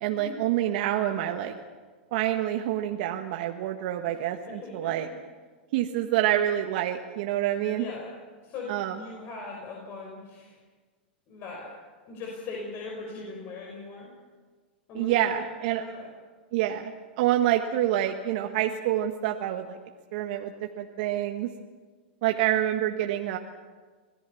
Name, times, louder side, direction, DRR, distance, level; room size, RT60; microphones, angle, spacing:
voice 1, 0.0-1.5 2.1-5.1 5.7-7.8 8.7-8.9 14.9-15.8 16.5-19.8 20.1-20.5 20.8-21.5 22.2-23.4, right 12 dB, 60° right, 4 dB, 1.5 m, -27 dB
voice 2, 4.4-4.9 7.7-8.1 8.4-10.6 11.3-11.7 12.1-14.1 14.9-15.5 15.8-16.1, left 3 dB, 45° left, 0 dB, 5.8 m, -40 dB
26.0 x 18.0 x 7.1 m, 1.4 s
hypercardioid pair, 110°, 5 cm